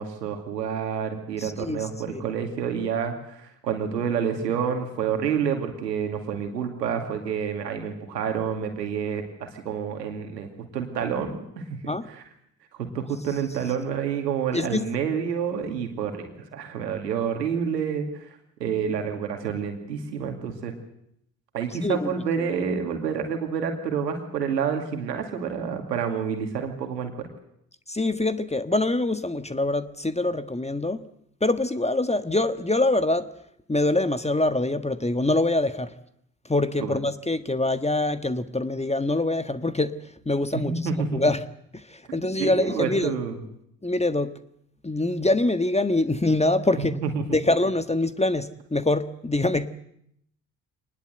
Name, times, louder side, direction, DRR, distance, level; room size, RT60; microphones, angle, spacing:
voice 1, 0.0-12.2 12.7-18.3 18.6-20.7 21.5-27.3 36.8-37.0 40.5-41.2 42.1-43.4 46.8-47.4, right 7 dB, 90° right, 5 dB, 2.5 m, -28 dB
voice 2, 1.4-2.2 11.9-12.1 14.5-14.8 21.8-22.1 27.9-31.0 31.4-33.3 33.7-35.9 36.5-39.9 40.2-41.4 41.7-43.1 43.8-44.3 44.8-47.0 47.3-49.7, left 2 dB, 15° left, 11 dB, 1.5 m, -24 dB
25.0 x 20.0 x 8.0 m, 0.75 s
figure-of-eight pair, 40°, 48 cm